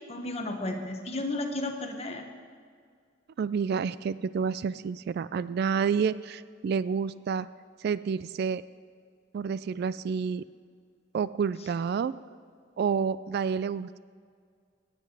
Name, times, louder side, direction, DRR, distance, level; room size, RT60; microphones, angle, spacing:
voice 1, 0.1-2.2, left 2 dB, 35° left, 4 dB, 1.2 m, -33 dB
voice 2, 3.4-7.5 7.8-8.6 9.3-10.4 11.1-12.1 12.8-14.0, right 6 dB, 55° right, 17 dB, 0.3 m, -29 dB
19.0 x 7.8 x 4.8 m, 2.1 s
head